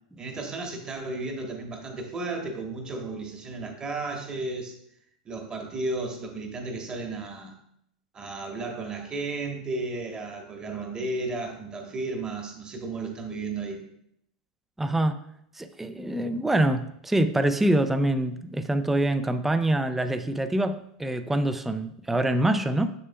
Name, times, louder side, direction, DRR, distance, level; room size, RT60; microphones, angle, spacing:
voice 1, 0.2-4.7 5.2-7.5 8.1-13.8, right 3 dB, 20° right, 1.1 m, -33 dB
voice 2, 14.8-15.2 15.6-22.9, right 1 dB, 5° right, 0.3 m, -25 dB
6.7 x 6.4 x 2.2 m
supercardioid pair, 125°, 4 cm